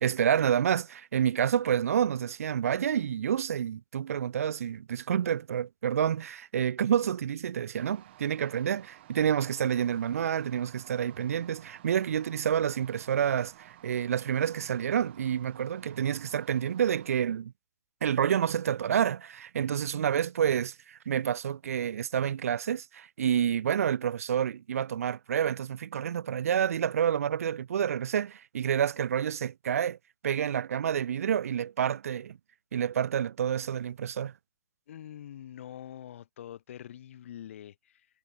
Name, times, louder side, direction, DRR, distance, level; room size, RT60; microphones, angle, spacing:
voice 1, 0.0-17.5 18.0-30.0 30.2-32.4 32.7-34.3, right 9 dB, 65° right, 0.3 m, -28 dB
sound 1, 7.8-17.2, right 15 dB, 40° right, 2.8 m, -54 dB
voice 2, 34.9-38.1, left 10 dB, 50° left, 1.5 m, -45 dB
hypercardioid pair, 140°, 9 cm